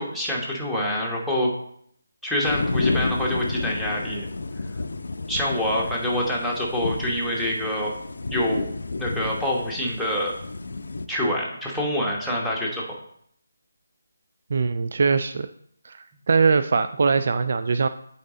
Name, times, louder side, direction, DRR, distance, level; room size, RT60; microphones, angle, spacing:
voice 1, 0.0-1.5 2.2-4.3 5.3-7.9 8.3-8.6 9.0-10.3 11.1-12.9, left 1 dB, ahead, -5 dB, 1.2 m, -26 dB
sound 1, 2.4-11.1, left 3 dB, 60° left, 0.5 m, -30 dB
voice 2, 14.5-15.5 15.8-17.9, right 5 dB, 50° right, 9 dB, 0.3 m, -22 dB
8.5 x 4.2 x 3.8 m, 0.68 s
figure-of-eight pair, 155°, 0 cm